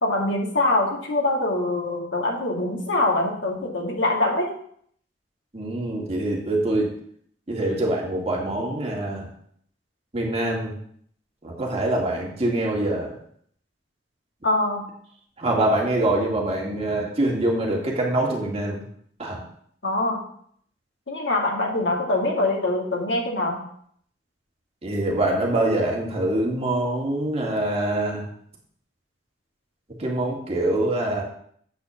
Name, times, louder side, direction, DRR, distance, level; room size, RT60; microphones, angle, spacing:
voice 1, 0.0-4.5 14.4-14.8 19.8-20.2 21.1-23.6, left 2 dB, 90° left, -1 dB, 2.1 m, -24 dB
voice 2, 5.5-6.9 7.5-9.3 10.1-10.7 11.4-13.1 15.4-18.8 19.2-19.4 24.8-28.3 30.0-31.2, right 1 dB, 35° right, -1 dB, 2.1 m, -24 dB
8.3 x 4.3 x 6.9 m, 0.63 s
head